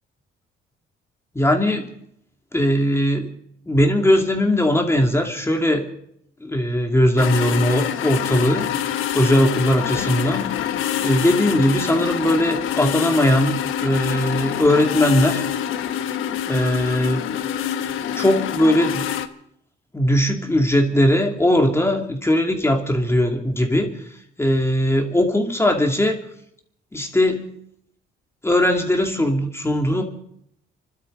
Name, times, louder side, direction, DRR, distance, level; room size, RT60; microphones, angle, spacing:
voice 1, 1.3-1.9 2.5-3.3 3.7-5.9 6.4-10.6 11.0-15.4 16.5-17.3 18.2-19.0 19.9-23.9 24.4-26.2 26.9-27.5 28.4-30.0, left 1 dB, 15° left, 2 dB, 2.6 m, -19 dB
sound 1, 7.2-19.3, left 10 dB, 90° left, 1.1 m, -26 dB
28.5 x 12.5 x 3.9 m, 0.71 s
cardioid pair, 90°, 20 cm